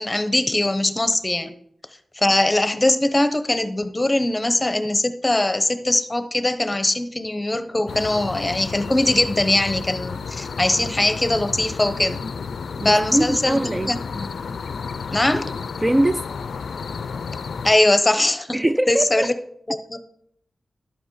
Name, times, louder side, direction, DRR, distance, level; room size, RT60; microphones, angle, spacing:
voice 1, 0.0-1.5 2.1-12.2 12.8-13.6 13.9-14.3 15.1-15.5 17.6-18.5 18.9-19.3 19.7-20.0, left 1 dB, 15° left, 0.9 m, -21 dB
sound 1, 7.9-17.8, left 5 dB, 80° left, 0.4 m, -32 dB
voice 2, 12.8-14.0 15.8-16.3 18.5-19.3, right 1 dB, 15° right, 0.3 m, -22 dB
11.5 x 8.0 x 4.8 m
wide cardioid pair, 130°, 0 cm